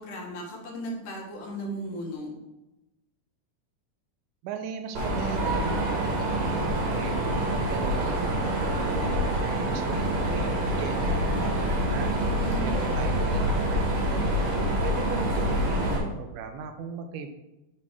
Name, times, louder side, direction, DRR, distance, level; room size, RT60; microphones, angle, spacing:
voice 1, 0.0-2.3 12.3-13.3, equal, 85° left, 0 dB, 2.9 m, -36 dB
voice 2, 4.4-9.1 9.4-12.2 12.6-14.4 14.8-17.3, right 6 dB, 90° right, 6 dB, 2.2 m, -38 dB
Mechanisms, 4.9-16.0, right 1 dB, 65° right, 2.7 m, -26 dB
7.4 x 4.3 x 4.8 m, 0.96 s
omnidirectional pair, 3.6 m